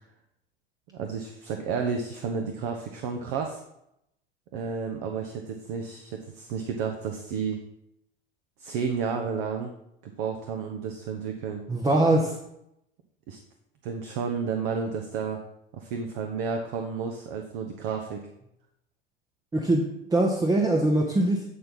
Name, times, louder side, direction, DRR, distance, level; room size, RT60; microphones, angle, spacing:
voice 1, 0.9-3.6 4.5-7.6 8.6-9.7 10.0-11.6 13.3-13.4 13.8-15.4 15.7-18.2, right 5 dB, 45° right, 3 dB, 0.9 m, -31 dB
voice 2, 11.7-12.3 19.5-21.4, right 1 dB, 10° right, 1 dB, 0.9 m, -22 dB
8.5 x 4.5 x 5.6 m, 0.81 s
figure-of-eight pair, 75°, 30 cm